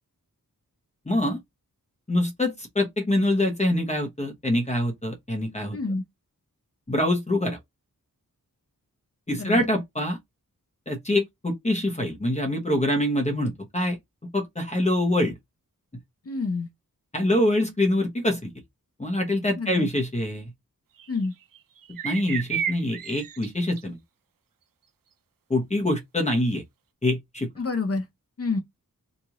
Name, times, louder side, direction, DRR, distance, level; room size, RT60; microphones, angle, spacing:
voice 1, 1.1-1.4 2.1-5.8 6.9-7.6 9.3-10.2 10.9-14.0 14.3-15.4 17.1-18.5 19.0-20.5 22.0-24.0 25.5-26.6 27.0-27.5, left 1 dB, 20° left, 0.9 m, -25 dB
voice 2, 5.7-6.0 9.4-9.6 16.3-16.7 19.6-19.9 21.1-21.3 27.6-28.0 28.4-28.6, left 3 dB, 45° left, 0.7 m, -27 dB
sound 1, 21.0-21.3 21.5-23.5 23.8-23.9, right 8 dB, 70° right, 0.5 m, -32 dB
3.0 x 2.6 x 3.6 m
wide cardioid pair, 95°, 34 cm